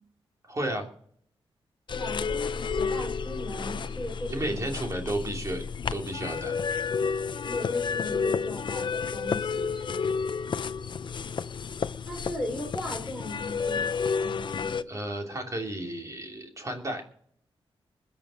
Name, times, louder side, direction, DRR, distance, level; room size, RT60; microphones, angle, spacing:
voice 1, 0.5-0.8 4.3-5.6 5.9-6.5 14.9-17.0, right 1 dB, 30° right, 2 dB, 3.0 m, -32 dB
sound 1, 1.9-14.8, left 5 dB, 50° left, 0.6 m, -31 dB
voice 2, 1.9-4.7 7.4-10.3 12.1-13.9 14.2-14.9, left 1 dB, 5° right, -1 dB, 4.1 m, -38 dB
21.0 x 7.2 x 6.4 m, 0.62 s
wide cardioid pair, 110°, 10 cm